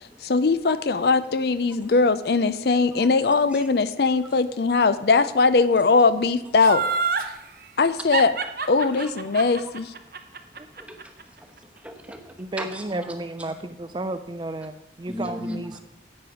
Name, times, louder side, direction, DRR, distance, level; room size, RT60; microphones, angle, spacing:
voice 1, 0.2-6.8 7.8-8.3 8.7-9.9, left 4 dB, 65° left, 14 dB, 0.5 m, -20 dB
Laughter, 6.6-7.3 8.1-11.2 11.6-11.7, right 5 dB, 55° right, 0.8 m, -26 dB
voice 2, 11.4-13.1 15.1-15.8, equal, 5° right, 5 dB, 1.0 m, -37 dB
voice 3, 12.4-15.8, right 2 dB, 25° right, 9 dB, 0.4 m, -32 dB
10.5 x 8.7 x 4.9 m, 0.95 s
head